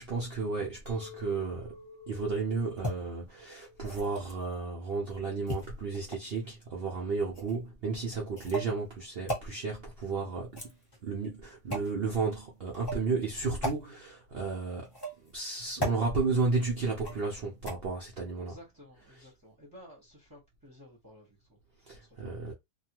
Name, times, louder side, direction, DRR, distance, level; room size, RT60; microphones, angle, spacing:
voice 1, 0.0-1.7 2.1-10.6 11.0-14.9 15.2-18.6 21.9-22.5, right 4 dB, 70° right, 0.5 m, -33 dB
Chink clink, 0.9-6.0, left 6 dB, 50° left, 0.7 m, -52 dB
sound 1, 2.8-2.9 3.8-4.4 5.5-6.4 7.3-7.6 8.4-8.7 9.3-9.5 10.4-11.1 11.7-11.9 12.7-13.0 13.6-13.8 14.8-15.3 15.8-16.0 17.0-17.3 17.7-17.8, equal, 20° left, 0.8 m, -36 dB
voice 2, 18.4-21.6 21.9-22.5, left 1 dB, 15° right, 0.8 m, -54 dB
2.7 x 2.3 x 2.9 m
omnidirectional pair, 1.8 m